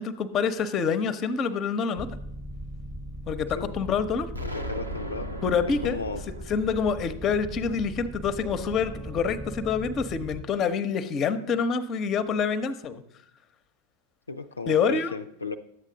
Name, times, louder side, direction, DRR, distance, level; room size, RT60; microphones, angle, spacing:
voice 1, 0.0-2.1 3.3-4.3 5.4-6.0 6.5-13.0 14.7-15.2, left 6 dB, 30° left, 12 dB, 0.7 m, -26 dB
sound 1, 2.0-10.4, equal, 5° right, 0.9 m, -39 dB
Explosion, 4.3-9.2, equal, 85° right, 0.8 m, -40 dB
voice 2, 4.4-5.3 5.8-6.2 14.3-15.6, left 3 dB, 80° left, 6 dB, 0.4 m, -34 dB
11.0 x 8.2 x 3.9 m, 0.79 s
figure-of-eight pair, 90°, 0 cm